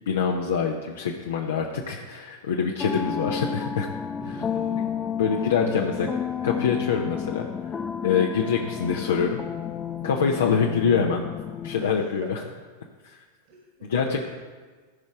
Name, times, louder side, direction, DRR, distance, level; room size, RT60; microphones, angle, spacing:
voice 1, 0.1-3.9 5.2-6.1 6.4-7.5 8.0-9.4 10.0-11.2 11.6-12.4 13.0-13.2 13.9-14.3, left 6 dB, 65° left, 1 dB, 0.8 m, -25 dB
sound 1, 2.8-11.9, left 7 dB, 20° left, 0.4 m, -31 dB
voice 2, 4.2-4.8 5.3-6.2 11.8-11.9 12.2-12.5 13.5-14.3, right 2 dB, 45° right, -2 dB, 1.9 m, -41 dB
14.5 x 5.3 x 4.7 m, 1.4 s
figure-of-eight pair, 90°, 0 cm